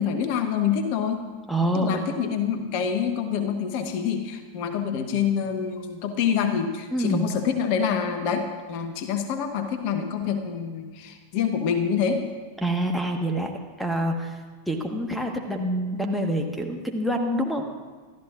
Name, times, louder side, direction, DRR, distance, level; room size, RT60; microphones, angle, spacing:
voice 1, 0.0-1.3 1.7-12.3, left 7 dB, 45° left, 7 dB, 1.2 m, -26 dB
voice 2, 1.5-2.2 6.9-7.3 12.6-14.4 14.7-17.7, equal, ahead, 5 dB, 1.4 m, -26 dB
27.0 x 13.0 x 2.5 m, 1.4 s
figure-of-eight pair, 90°, 0 cm